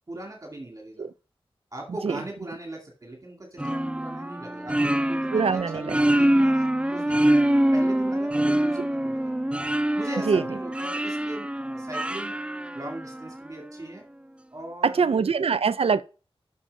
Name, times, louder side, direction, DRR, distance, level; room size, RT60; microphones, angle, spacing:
voice 1, 0.1-1.1 1.7-7.4 7.7-9.3 9.9-12.3 12.7-14.0 14.5-15.3, right 1 dB, 35° right, 2.3 m, -39 dB
sound 1, 3.6-13.4, right 1 dB, 10° right, 0.5 m, -25 dB
voice 2, 5.3-6.0 8.8-8.9 10.3-10.4 14.8-16.0, right 5 dB, 80° right, 0.5 m, -23 dB
7.4 x 6.5 x 5.3 m
wide cardioid pair, 85°, 10 cm